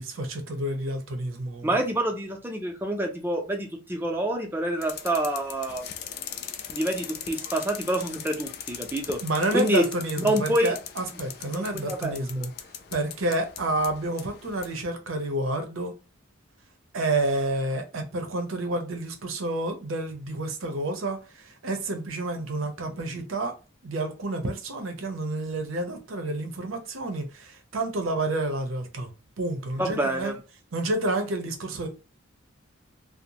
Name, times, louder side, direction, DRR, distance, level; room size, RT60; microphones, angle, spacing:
voice 1, 0.0-1.7 9.2-12.5 12.9-15.9 16.9-23.5 23.8-29.1 29.4-30.3 30.7-31.9, right 2 dB, 80° right, 0.7 m, -29 dB
voice 2, 1.6-5.8 6.7-9.2 9.5-9.8 10.2-10.7 11.1-11.2 11.5-12.2 29.8-30.3, right 1 dB, 10° right, 0.5 m, -27 dB
sound 1, 4.8-14.8, left 8 dB, 50° left, 0.3 m, -40 dB
2.6 x 2.0 x 2.8 m
head